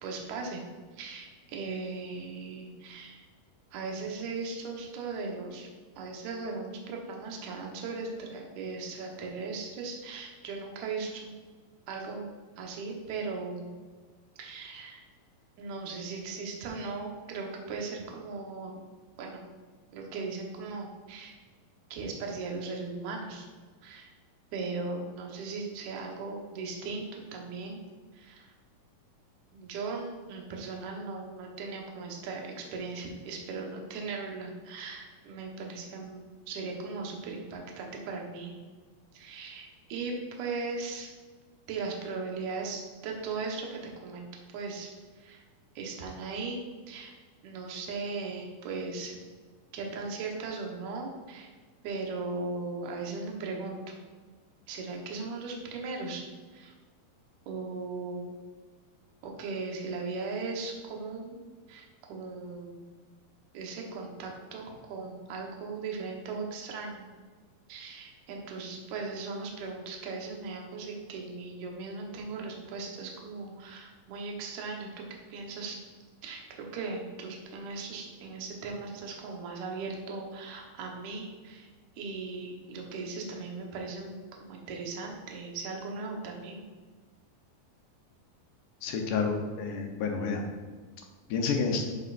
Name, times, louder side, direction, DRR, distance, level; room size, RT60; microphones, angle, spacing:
voice 1, 0.0-0.6 0.9-3.2 3.7-5.7 6.0-11.3 11.9-12.3 12.6-13.7 14.4-15.0 15.6-18.8 19.2-19.4 19.9-21.4 21.9-23.5 23.8-24.1 24.5-27.8 28.1-28.5 29.5-38.5 39.1-41.1 41.7-44.9 45.2-45.4 45.8-46.6 46.9-47.1 47.4-49.2 49.7-51.5 51.8-53.8 54.7-56.3 56.5-56.7 57.5-58.3 59.2-61.4 61.7-62.8 63.5-67.1 67.7-75.8 76.2-81.7 82.0-86.6, right 4 dB, 65° right, 0 dB, 2.3 m, -38 dB
voice 2, 88.8-90.4 91.3-91.9, left 5 dB, 75° left, 2 dB, 2.2 m, -29 dB
12.0 x 5.6 x 2.5 m, 1.4 s
omnidirectional pair, 4.1 m